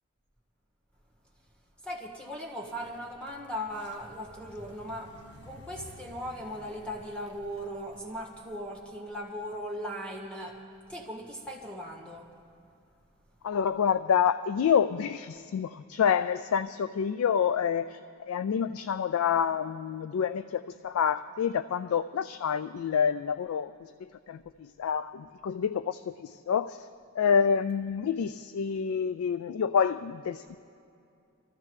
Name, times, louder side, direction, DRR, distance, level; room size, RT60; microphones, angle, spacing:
voice 1, 1.8-5.2 5.4-10.6 10.9-12.3, equal, 5° left, -1 dB, 1.7 m, -38 dB
sound 1, 2.7-9.3, left 1 dB, 60° left, 1.3 m, -53 dB
voice 2, 13.4-18.0 18.3-26.9 27.1-30.6, left 7 dB, 85° left, 13 dB, 0.3 m, -28 dB
25.5 x 14.5 x 3.2 m, 2.5 s
head